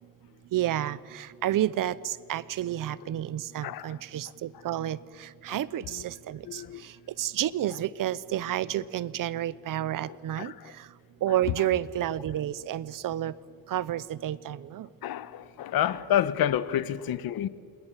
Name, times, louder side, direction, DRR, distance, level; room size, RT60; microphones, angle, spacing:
voice 1, 0.5-10.9 11.2-13.3 13.7-14.9, right 12 dB, 60° right, 0.8 m, -30 dB
voice 2, 6.5-6.8 10.4-10.5 15.0-17.5, left 10 dB, 70° left, 1.1 m, -28 dB
29.0 x 26.5 x 7.4 m
cardioid pair, 130°, 38 cm